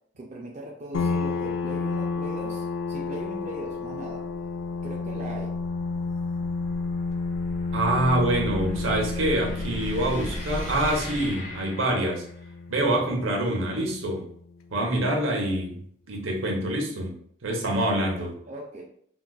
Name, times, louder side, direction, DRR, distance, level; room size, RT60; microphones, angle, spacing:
voice 1, 0.2-4.2 4.8-5.5 18.4-18.8, right 1 dB, 35° right, -2 dB, 0.4 m, -39 dB
sound 1, 0.9-14.2, left 4 dB, 90° left, 0.4 m, -31 dB
sound 2, 1.9-12.5, equal, 40° left, 0.7 m, -39 dB
voice 2, 7.7-12.2 12.7-14.2 14.7-15.8 16.1-17.1 17.4-18.3, right 1 dB, 85° right, 1 dB, 0.8 m, -25 dB
3.8 x 2.3 x 2.3 m, 0.64 s
head